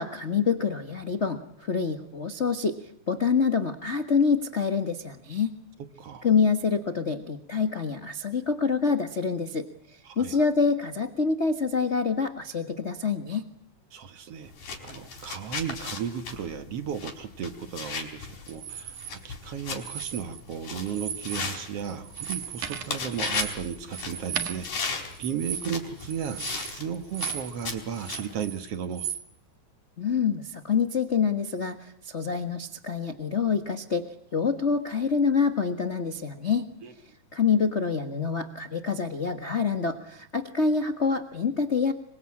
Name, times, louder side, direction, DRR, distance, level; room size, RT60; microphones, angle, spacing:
voice 1, 0.0-2.8 3.1-5.5 6.2-9.7 10.2-13.5 30.0-34.0 34.3-36.7 37.3-41.9, left 5 dB, 40° left, 8 dB, 0.9 m, -26 dB
voice 2, 10.0-10.4 13.9-14.5 14.8-29.1 36.8-36.9, right 7 dB, 55° right, 10 dB, 2.2 m, -35 dB
sound 1, 14.5-28.4, left 4 dB, 85° left, 5.9 m, -37 dB
sound 2, 18.5-19.1 19.7-20.5 20.8-21.5 21.8-27.6 27.9-29.2, right 9 dB, 80° right, 3.4 m, -36 dB
26.5 x 23.5 x 8.7 m, 0.66 s
omnidirectional pair, 3.5 m